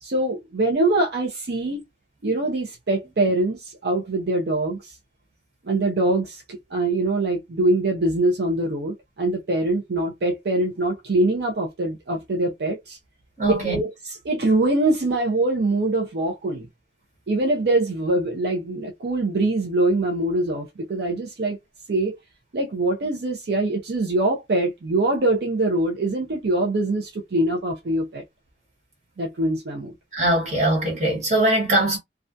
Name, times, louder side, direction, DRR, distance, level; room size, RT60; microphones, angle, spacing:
voice 1, 0.0-1.8 2.2-5.0 5.6-13.0 13.5-16.7 17.3-21.6 21.9-22.2 22.5-28.2 29.2-29.9, right 2 dB, 70° right, 0.5 m, -23 dB
voice 2, 13.4-13.8 30.1-32.0, right 1 dB, 40° right, 1.4 m, -21 dB
2.3 x 2.1 x 2.5 m
head